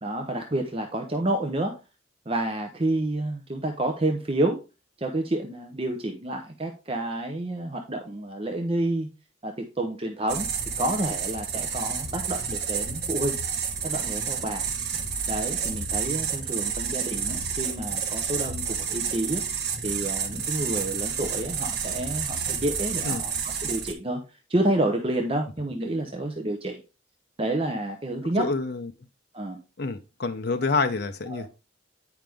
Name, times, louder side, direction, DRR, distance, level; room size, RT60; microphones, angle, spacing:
voice 1, 0.0-1.7 2.3-4.6 5.0-9.1 9.4-10.5 10.8-13.4 13.8-14.7 15.3-19.4 19.8-24.2 24.5-26.8 27.4-28.5 29.3-29.6 31.3-31.5, right 1 dB, 25° right, 0.7 m, -29 dB
sound 1, 10.3-23.9, right 6 dB, 50° right, 1.2 m, -30 dB
voice 2, 28.4-28.9 29.8-31.5, left 3 dB, 50° left, 0.6 m, -27 dB
9.2 x 5.0 x 3.5 m
head